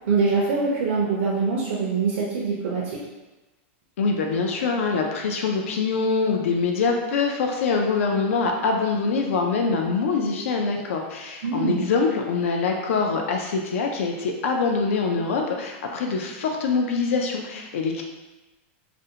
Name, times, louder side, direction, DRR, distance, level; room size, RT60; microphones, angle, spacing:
voice 1, 0.1-3.0 11.4-11.8, right 4 dB, 60° right, -4 dB, 0.5 m, -23 dB
voice 2, 4.0-18.0, left 4 dB, 85° left, 2 dB, 0.3 m, -24 dB
2.5 x 2.0 x 2.7 m, 1.1 s
supercardioid pair, 175°, 7 cm